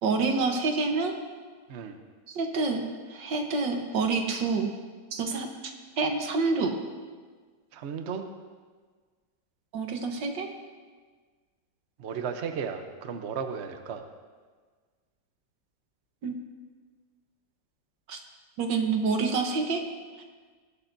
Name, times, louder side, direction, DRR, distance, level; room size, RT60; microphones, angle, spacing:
voice 1, 0.0-1.1 2.3-2.8 3.1-4.7 5.1-5.5 6.0-6.7 9.7-10.5 16.2-16.3 18.1-18.2 18.6-19.8, right 4 dB, 70° right, 4 dB, 1.8 m, -27 dB
voice 2, 7.7-8.2 12.0-14.0, right 6 dB, 55° right, 7 dB, 0.8 m, -34 dB
20.0 x 11.5 x 2.7 m, 1.5 s
omnidirectional pair, 2.0 m